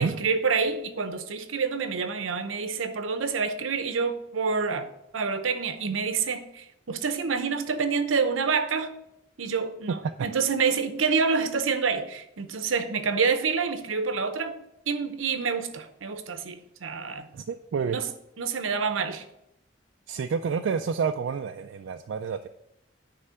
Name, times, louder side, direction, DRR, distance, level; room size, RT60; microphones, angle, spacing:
voice 1, 0.0-4.9 5.1-8.9 9.4-14.5 14.9-17.3 17.9-18.0 18.4-19.2, right 5 dB, 90° right, 0.7 m, -27 dB
voice 2, 17.3-18.0 20.1-22.5, right 6 dB, 70° right, 0.3 m, -29 dB
9.6 x 3.3 x 5.6 m
head